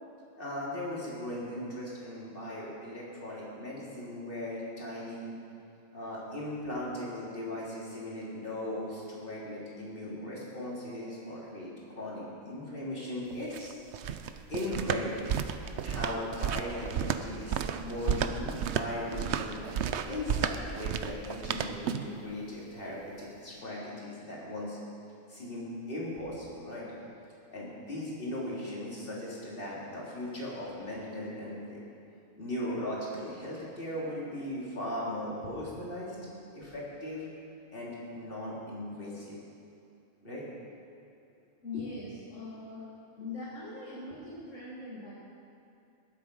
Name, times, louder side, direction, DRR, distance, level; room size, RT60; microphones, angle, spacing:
voice 1, 0.4-5.3 5.9-13.7 14.5-15.3 15.8-19.6 20.0-24.8 25.3-26.9 27.5-31.8 32.4-37.3 37.7-39.4 40.2-40.5, left 1 dB, 40° left, -6 dB, 3.4 m, -38 dB
sound 1, 13.3-22.2, right 8 dB, 65° right, 0.8 m, -33 dB
voice 2, 41.6-42.8 43.2-45.1, left 3 dB, 65° left, -8 dB, 2.3 m, -41 dB
20.5 x 8.3 x 5.4 m, 2.5 s
omnidirectional pair, 1.4 m